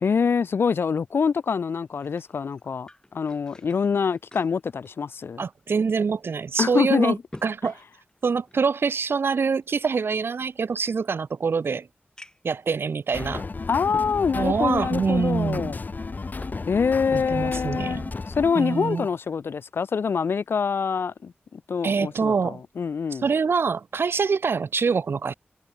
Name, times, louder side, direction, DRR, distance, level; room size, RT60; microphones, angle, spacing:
voice 1, 0.0-5.5 6.6-7.2 13.7-15.8 16.7-18.0 18.4-23.3, left 6 dB, 80° left, 0.4 m, -25 dB
sound 1, 1.7-5.7 6.1-6.2 6.8-8.7 9.6-11.1 11.6-11.7 12.2-12.6 13.3-13.4 15.7-16.7 17.0-17.9 18.3-18.5, left 1 dB, 20° left, 4.5 m, -50 dB
voice 2, 5.4-7.8 8.2-11.9 12.4-13.4 14.3-15.7 17.1-18.0 18.5-19.1 21.8-22.6 23.1-25.3, right 5 dB, 80° right, 1.6 m, -25 dB
sound 2, 13.1-19.1, left 3 dB, 50° left, 2.0 m, -34 dB
wide cardioid pair, 90°, 4 cm